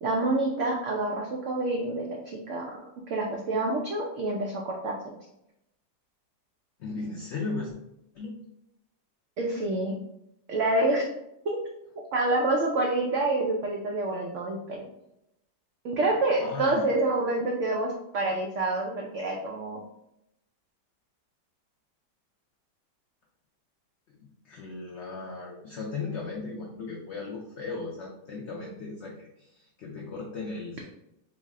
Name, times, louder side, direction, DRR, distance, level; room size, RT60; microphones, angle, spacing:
voice 1, 0.0-2.7 3.1-5.0 9.4-9.9 10.5-11.1 11.4-11.6 12.1-14.8 15.8-19.8, right 2 dB, 85° right, 0 dB, 0.6 m, -27 dB
voice 2, 6.8-7.7 8.1-8.3 16.4-16.9 24.4-30.9, left 4 dB, 85° left, -1 dB, 0.6 m, -36 dB
3.9 x 2.0 x 3.6 m, 0.83 s
omnidirectional pair, 1.8 m